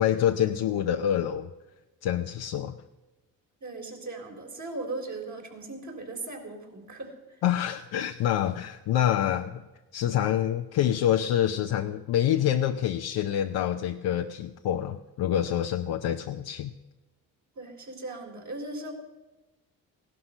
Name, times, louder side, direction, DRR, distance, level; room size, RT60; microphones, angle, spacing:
voice 1, 0.0-1.5 2.0-2.8 7.4-9.6 9.9-16.7, left 10 dB, 70° left, 5 dB, 0.8 m, -26 dB
voice 2, 3.6-7.4 17.6-18.9, right 2 dB, 45° right, 1 dB, 3.7 m, -38 dB
16.5 x 12.0 x 5.5 m, 1.1 s
supercardioid pair, 65°, 39 cm